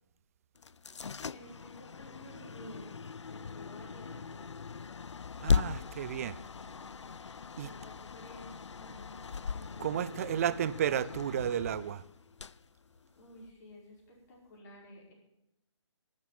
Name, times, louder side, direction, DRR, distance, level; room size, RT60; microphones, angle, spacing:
sound 1, 0.6-13.5, left 6 dB, 80° left, 0.4 m, -38 dB
voice 1, 1.3-3.0 3.2-4.9 5.3-5.8 6.1-9.2 9.5-10.6 13.1-15.1, left 1 dB, 40° left, -3 dB, 5.1 m, -53 dB
voice 2, 5.4-6.4 7.6-7.7 9.8-12.0, right 10 dB, 30° right, 17 dB, 0.4 m, -32 dB
12.0 x 7.4 x 9.3 m, 0.86 s
figure-of-eight pair, 140°, 15 cm